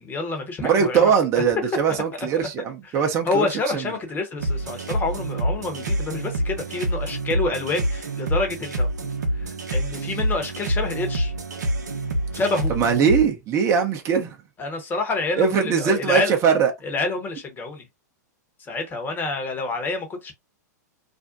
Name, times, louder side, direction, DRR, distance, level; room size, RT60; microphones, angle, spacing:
voice 1, 0.0-1.4 1.9-2.5 2.8-8.9 9.3-11.3 12.3-12.7 14.6-16.4 16.8-17.9 18.6-20.3, left 3 dB, 20° left, 0.9 m, -28 dB
voice 2, 0.6-3.4 3.7-3.8 12.7-14.4 15.4-16.7, right 6 dB, 30° right, 0.7 m, -21 dB
sound 1, 4.4-13.2, right 1 dB, 70° right, 0.7 m, -26 dB
2.5 x 2.1 x 2.5 m
hypercardioid pair, 105°, 10 cm